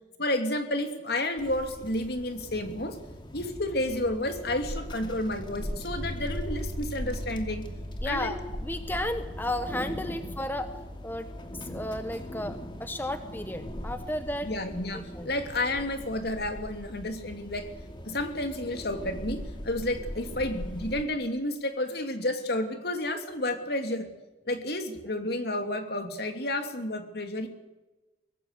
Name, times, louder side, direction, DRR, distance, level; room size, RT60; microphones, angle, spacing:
voice 1, 0.2-3.0 3.3-7.7 8.0-8.3 14.4-17.7 18.0-24.1 24.5-27.5, left 1 dB, 60° left, 7 dB, 2.8 m, -31 dB
sound 1, 1.4-21.0, equal, 25° left, 2.4 m, -40 dB
sound 2, 6.0-16.1, equal, 25° right, 4.0 m, -42 dB
voice 2, 8.0-10.7 11.0-11.3 11.7-14.5 15.1-15.3, left 1 dB, 10° left, 9 dB, 1.1 m, -33 dB
23.5 x 19.0 x 8.3 m, 1.1 s
head